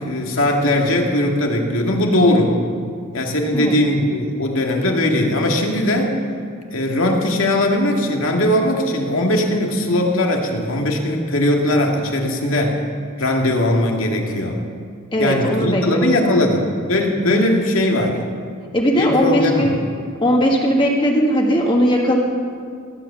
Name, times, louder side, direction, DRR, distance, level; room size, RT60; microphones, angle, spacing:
voice 1, 0.0-2.6 3.1-6.2 6.7-12.8 13.2-14.6 15.2-18.2 18.9-19.8, left 1 dB, 70° left, 1 dB, 2.1 m, -19 dB
voice 2, 15.1-16.5 18.7-19.8 20.2-22.2, equal, 25° left, 0 dB, 1.8 m, -18 dB
17.5 x 9.9 x 6.9 m, 2.2 s
head